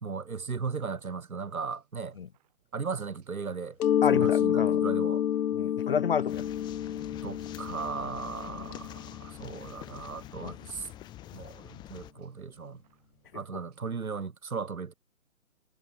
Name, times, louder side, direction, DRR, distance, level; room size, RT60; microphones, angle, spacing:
voice 1, 0.0-2.2 2.7-3.8 4.1-5.2 7.2-10.9 11.3-12.8 13.3-14.9, right 5 dB, 85° right, 1.6 m, -37 dB
sound 1, 0.6-14.3, right 16 dB, 30° right, 7.8 m, -68 dB
Mallet percussion, 3.8-9.3, left 10 dB, 85° left, 0.5 m, -28 dB
voice 2, 4.0-4.8 5.5-6.4 8.5-8.8 10.4-10.5, left 7 dB, 45° left, 0.7 m, -30 dB
sound 2, 6.2-12.1, left 14 dB, 10° left, 1.6 m, -46 dB
figure-of-eight pair, 150°, 41 cm